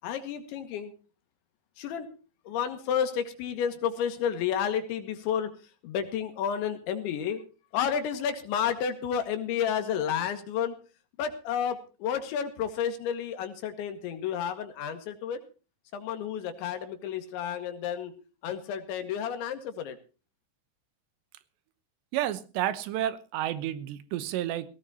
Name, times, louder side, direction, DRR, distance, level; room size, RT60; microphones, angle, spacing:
voice 1, 0.0-0.9 1.8-2.1 2.5-5.5 5.8-7.4 7.7-10.8 11.2-15.4 15.9-18.1 18.4-20.0, left 8 dB, 85° left, 8 dB, 4.3 m, -31 dB
voice 2, 22.1-24.7, right 12 dB, 80° right, 14 dB, 3.2 m, -30 dB
19.0 x 17.5 x 2.9 m, 0.35 s
omnidirectional pair, 5.1 m